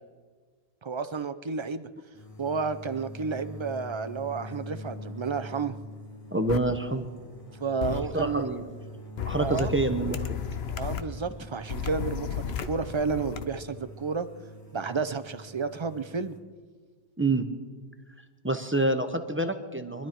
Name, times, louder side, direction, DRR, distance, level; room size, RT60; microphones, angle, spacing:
voice 1, 0.8-1.9 2.4-5.7 7.6-8.5 9.4-9.7 10.8-14.3 14.7-16.3, right 5 dB, 40° right, 11 dB, 0.4 m, -31 dB
sound 1, 2.1-16.4, left 2 dB, 30° left, 2.2 m, -44 dB
voice 2, 6.3-7.1 7.9-8.6 9.2-10.4 17.2-17.4 18.4-20.1, right 2 dB, 10° right, 7 dB, 0.8 m, -27 dB
sound 2, 6.5-6.6 7.8-8.0 9.2-11.0 11.7-13.4, left 8 dB, 65° left, 1.0 m, -33 dB
24.0 x 12.0 x 4.5 m, 1.5 s
omnidirectional pair, 1.2 m